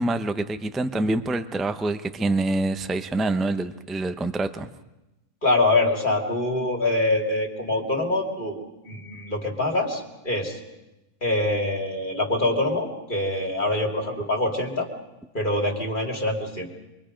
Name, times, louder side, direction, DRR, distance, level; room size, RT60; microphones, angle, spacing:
voice 1, 0.0-4.7, right 2 dB, ahead, 9 dB, 0.4 m, -26 dB
voice 2, 5.4-8.6 8.9-10.6 11.2-14.9 15.3-16.7, left 2 dB, 35° left, 1 dB, 2.9 m, -24 dB
26.5 x 23.0 x 5.2 m, 0.99 s
omnidirectional pair, 1.5 m